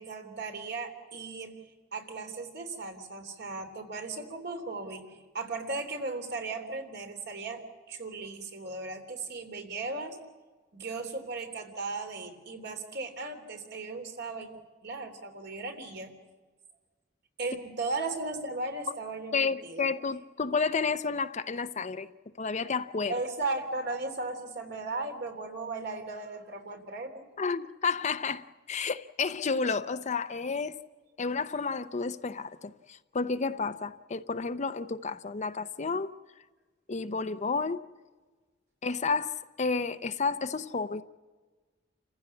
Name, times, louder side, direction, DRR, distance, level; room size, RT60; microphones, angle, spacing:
voice 1, 0.0-1.5 1.9-5.0 5.3-10.2 10.7-14.5 14.8-16.1 17.4-19.9 23.1-27.3, right 3 dB, 60° right, 3.4 m, -36 dB
voice 2, 19.3-22.1 22.4-23.1 27.4-30.8 31.2-36.1 36.9-37.8 38.8-41.0, left 4 dB, 40° left, 0.6 m, -31 dB
29.5 x 15.5 x 8.4 m
head